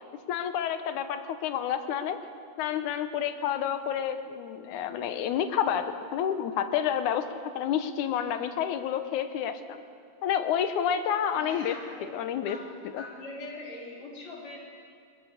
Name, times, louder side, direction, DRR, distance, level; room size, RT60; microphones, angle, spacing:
voice 1, 0.3-2.2 2.6-7.3 7.6-9.8 10.2-11.8 12.0-12.6 12.9-13.0, left 9 dB, 90° left, 9 dB, 2.4 m, -29 dB
voice 2, 11.3-14.6, left 2 dB, 65° left, -3 dB, 5.0 m, -43 dB
22.5 x 21.0 x 6.7 m, 2.2 s
omnidirectional pair, 3.4 m